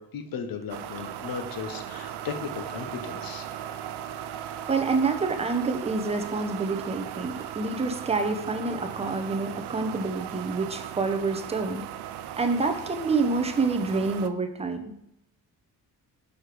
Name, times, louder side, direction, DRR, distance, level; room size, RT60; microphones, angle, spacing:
voice 1, 0.0-3.5 7.4-7.5, left 6 dB, 60° left, 7 dB, 1.0 m, -36 dB
sound 1, 0.7-14.3, right 11 dB, 85° right, 0.5 m, -37 dB
voice 2, 4.7-11.8 12.4-14.8, right 3 dB, 15° right, 6 dB, 0.6 m, -27 dB
6.3 x 5.0 x 4.8 m, 0.80 s
wide cardioid pair, 150°, 38 cm